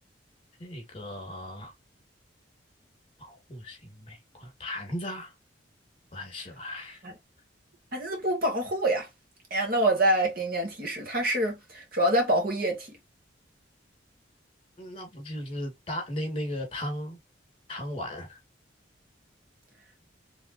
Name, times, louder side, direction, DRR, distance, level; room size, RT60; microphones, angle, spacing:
voice 1, 0.6-1.7 3.2-5.3 6.1-7.0 14.8-17.2 17.7-18.4, left 1 dB, 30° left, 2.4 m, -36 dB
voice 2, 7.9-9.1 9.5-13.0, right 1 dB, 50° right, 2.1 m, -26 dB
4.2 x 3.6 x 2.9 m
head